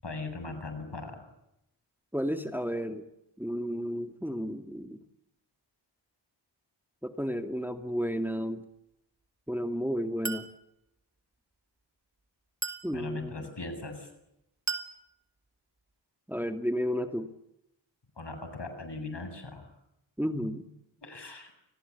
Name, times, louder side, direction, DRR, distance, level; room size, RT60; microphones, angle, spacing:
voice 1, 0.0-1.2 12.9-14.1 18.2-19.7 21.0-21.5, left 3 dB, 60° left, 7 dB, 7.9 m, -39 dB
voice 2, 2.1-3.0 3.4-5.0 7.0-8.6 9.5-10.5 12.8-13.3 16.3-17.3 20.2-20.7, equal, 5° right, 7 dB, 2.2 m, -32 dB
Chink clink, 10.3-10.6 12.6-13.0 14.7-15.0, right 4 dB, 35° right, 3.5 m, -35 dB
30.0 x 20.5 x 8.5 m, 0.84 s
wide cardioid pair, 45°, 46 cm